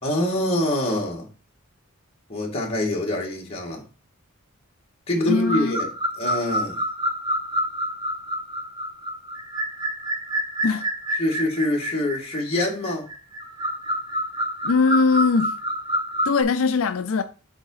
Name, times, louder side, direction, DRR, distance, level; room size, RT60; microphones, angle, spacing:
voice 1, 0.0-1.3 2.3-3.8 5.1-5.9 6.2-6.8 11.2-13.1, left 1 dB, 30° left, 2.0 m, -25 dB
voice 2, 5.3-5.8 10.6-10.9 14.6-15.6 16.2-17.2, left 4 dB, 75° left, 0.5 m, -21 dB
sound 1, 5.3-16.4, equal, 20° right, 1.5 m, -28 dB
7.9 x 3.6 x 5.6 m
head